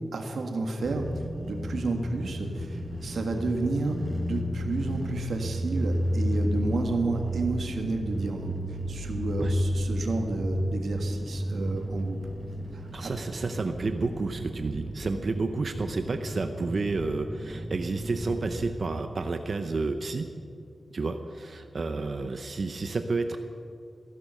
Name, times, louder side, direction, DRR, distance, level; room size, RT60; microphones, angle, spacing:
voice 1, 0.1-12.2 12.7-13.1, right 2 dB, 70° right, 4 dB, 1.7 m, -31 dB
sound 1, 0.8-18.7, equal, 10° right, 1.3 m, -33 dB
voice 2, 12.9-20.3 20.9-23.4, right 3 dB, 45° right, 7 dB, 0.6 m, -30 dB
15.0 x 11.0 x 6.4 m, 2.4 s
wide cardioid pair, 155°, 0 cm